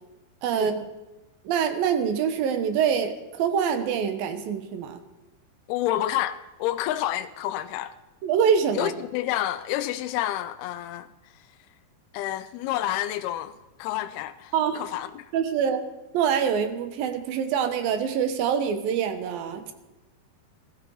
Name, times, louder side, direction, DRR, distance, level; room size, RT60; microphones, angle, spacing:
voice 1, 0.4-0.9 1.4-5.0 8.2-8.9 14.5-14.8 15.3-15.8 16.1-19.7, right 7 dB, 70° right, 2.8 m, -25 dB
voice 2, 5.7-8.0 8.7-11.5 12.1-15.3, left 13 dB, 80° left, 2.5 m, -29 dB
20.5 x 14.0 x 4.9 m
omnidirectional pair, 4.7 m